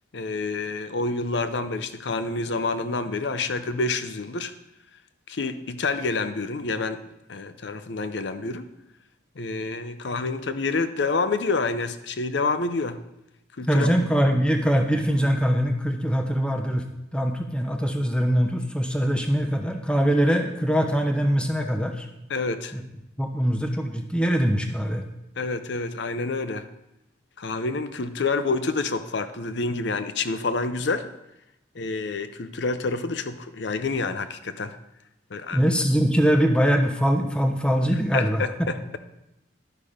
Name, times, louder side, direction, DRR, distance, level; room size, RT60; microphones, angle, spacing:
voice 1, 0.1-4.5 5.3-8.7 9.4-13.0 13.6-13.9 22.3-22.7 25.4-26.7 27.4-31.1 31.7-34.8 35.3-35.6 38.1-39.0, left 3 dB, 65° left, 11 dB, 0.6 m, -28 dB
voice 2, 13.7-16.9 17.1-22.1 22.7-22.8 23.2-25.0 35.5-38.7, equal, 5° left, 4 dB, 0.7 m, -22 dB
11.0 x 5.6 x 5.0 m, 0.89 s
head